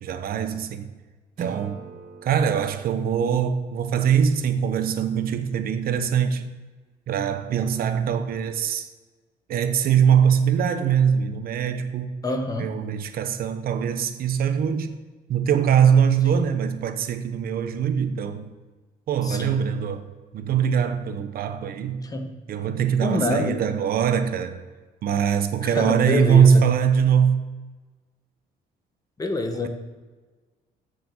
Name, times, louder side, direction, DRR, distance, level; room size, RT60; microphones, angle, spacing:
voice 1, 0.0-0.9 1.4-1.8 2.2-6.5 7.1-8.9 9.5-12.1 12.6-15.0 15.3-18.5 19.1-20.1 20.3-22.0 22.5-24.6 25.0-27.4, right 7 dB, 60° right, 1.0 m, -22 dB
Acoustic guitar / Strum, 1.4-4.5, right 6 dB, 45° right, 1.4 m, -41 dB
voice 2, 12.2-12.8 16.2-16.4 19.2-19.6 22.0-22.3 23.0-23.6 25.6-26.6 29.2-29.7, left 2 dB, 20° left, 1.3 m, -26 dB
7.3 x 6.7 x 7.8 m
cardioid pair, 110°, 17 cm